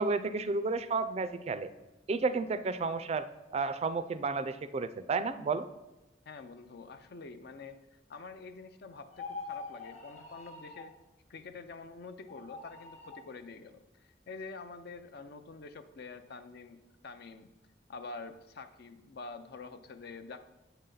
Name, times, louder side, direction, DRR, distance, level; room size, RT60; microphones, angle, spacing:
voice 1, 0.0-1.7 2.1-5.7, right 4 dB, 35° right, 12 dB, 0.3 m, -32 dB
voice 2, 6.3-7.8 8.1-10.9 11.3-16.8 17.0-17.5 17.9-20.5, left 4 dB, 65° left, 10 dB, 0.5 m, -47 dB
sound 1, 9.1-10.9 12.2-13.3, left 4 dB, 40° left, 0.8 m, -44 dB
8.1 x 5.6 x 3.8 m, 1.0 s
head